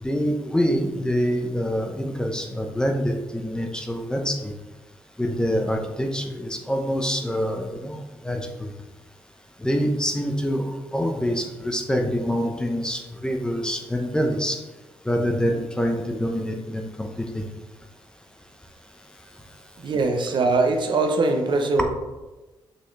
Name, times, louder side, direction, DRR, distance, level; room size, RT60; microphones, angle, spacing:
voice 1, 0.0-4.5 5.2-8.7 9.6-10.6 10.9-14.6 15.1-17.4, equal, 10° left, 3 dB, 1.0 m, -25 dB
voice 2, 19.8-21.8, right 3 dB, 60° right, 4 dB, 0.9 m, -22 dB
6.3 x 5.6 x 3.3 m, 1.1 s
cardioid pair, 85°, 9 cm